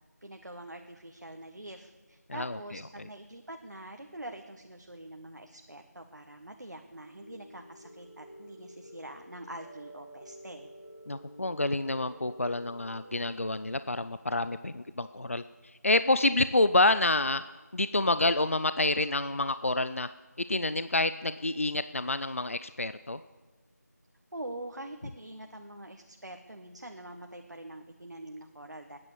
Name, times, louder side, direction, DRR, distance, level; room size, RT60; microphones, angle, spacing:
voice 1, 0.2-10.7 24.3-29.0, right 1 dB, 80° right, 4 dB, 1.5 m, -45 dB
sound 1, 7.2-13.3, right 1 dB, 85° left, 6.6 m, -50 dB
voice 2, 11.1-15.4 15.8-17.4 17.7-20.1 20.5-23.2, left 2 dB, 50° left, 13 dB, 0.5 m, -28 dB
21.0 x 9.7 x 6.9 m, 1.2 s
figure-of-eight pair, 175°, 9 cm